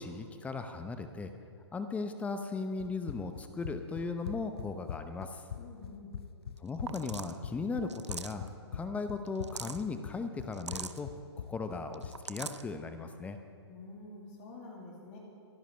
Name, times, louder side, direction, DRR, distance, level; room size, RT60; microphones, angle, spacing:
voice 1, 0.0-1.3 1.7-5.4 6.6-8.4 8.7-11.1 11.5-13.4, left 4 dB, 10° left, 8 dB, 0.8 m, -37 dB
Run, 2.8-12.2, left 8 dB, 65° left, 0.6 m, -43 dB
voice 2, 5.6-6.2 13.7-15.2, left 2 dB, 35° left, -2 dB, 2.7 m, -48 dB
sound 1, 6.6-6.7 6.9-7.4 7.9-8.5 9.3-9.8 10.5-11.0 11.9-12.6, right 5 dB, 85° right, 0.7 m, -41 dB
27.5 x 10.5 x 3.4 m, 2.2 s
figure-of-eight pair, 125°, 14 cm